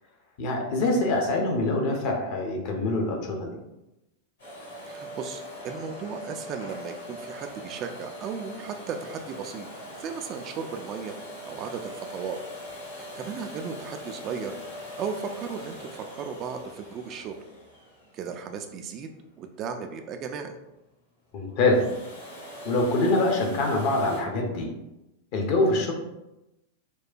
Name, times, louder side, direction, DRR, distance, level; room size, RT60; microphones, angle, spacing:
voice 1, 0.4-3.6 21.3-21.9 22.6-24.7 25.3-25.9, left 2 dB, 45° left, 1 dB, 0.7 m, -24 dB
Domestic sounds home sounds, 4.4-19.1 21.5-24.2, equal, 65° left, 1.4 m, -42 dB
voice 2, 4.8-9.7 10.0-11.2 11.4-12.4 12.9-14.5 15.0-17.3 18.1-19.1 19.4-20.5, right 6 dB, 35° right, 5 dB, 0.3 m, -35 dB
4.5 x 2.1 x 2.5 m, 0.95 s
figure-of-eight pair, 90°, 0 cm